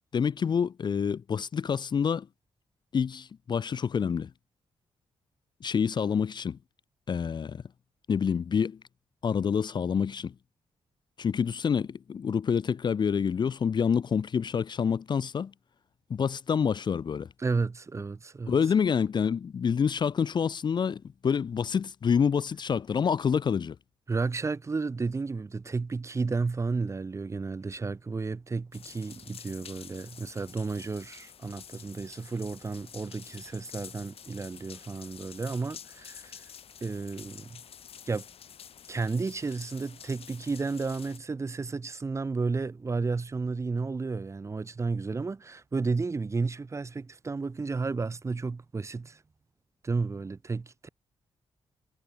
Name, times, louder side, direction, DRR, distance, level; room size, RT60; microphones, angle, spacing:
voice 1, 0.0-2.3 2.9-4.3 5.6-6.6 7.1-7.6 8.1-8.8 9.2-10.3 11.2-15.5 16.1-17.3 18.5-23.8, left 7 dB, 45° left, 0.7 m, -27 dB
voice 2, 17.4-18.6 24.1-36.4 36.8-37.6 38.1-38.2 38.9-49.2 49.8-50.9, right 4 dB, 25° right, 1.7 m, -32 dB
sound 1, 28.7-41.2, left 8 dB, 65° left, 4.9 m, -49 dB
wide cardioid pair, 145°, 11 cm